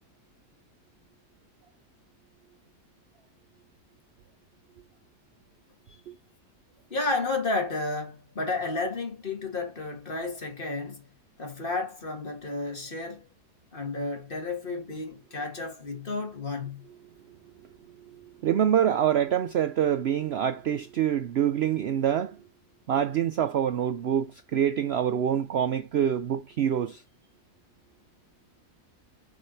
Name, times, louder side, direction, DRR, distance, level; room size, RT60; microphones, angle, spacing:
voice 1, 6.9-11.0 11.4-13.2 13.7-16.8, left 3 dB, 35° left, 2.2 m, -32 dB
voice 2, 18.4-22.4 22.9-27.0, right 9 dB, 65° right, 0.6 m, -25 dB
6.4 x 5.0 x 4.0 m
omnidirectional pair, 1.7 m